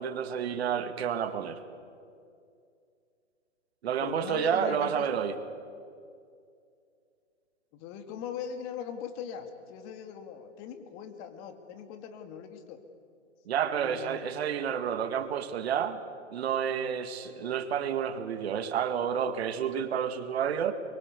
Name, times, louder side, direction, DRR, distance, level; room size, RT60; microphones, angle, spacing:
voice 1, 0.0-1.6 3.8-5.4 13.5-16.0 16.3-20.7, right 8 dB, 55° right, 10 dB, 2.1 m, -30 dB
voice 2, 4.0-5.1 7.7-12.8 13.7-14.2, left 8 dB, 30° left, 7 dB, 2.5 m, -40 dB
24.0 x 22.5 x 8.4 m, 2.4 s
hypercardioid pair, 135°, 37 cm